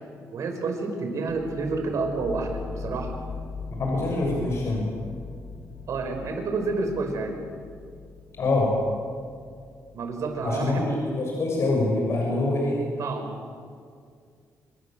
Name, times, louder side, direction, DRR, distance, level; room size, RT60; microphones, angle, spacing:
voice 1, 0.3-3.2 5.9-7.3 9.9-11.0 13.0-13.3, right 3 dB, 65° right, 4 dB, 5.5 m, -29 dB
sound 1, 1.3-11.1, left 4 dB, 75° left, 4.6 m, -41 dB
voice 2, 3.8-4.9 8.4-8.7 10.4-12.8, left 2 dB, 55° left, -2 dB, 7.2 m, -25 dB
26.5 x 23.5 x 7.8 m, 2.2 s
cardioid pair, 100°, 6 cm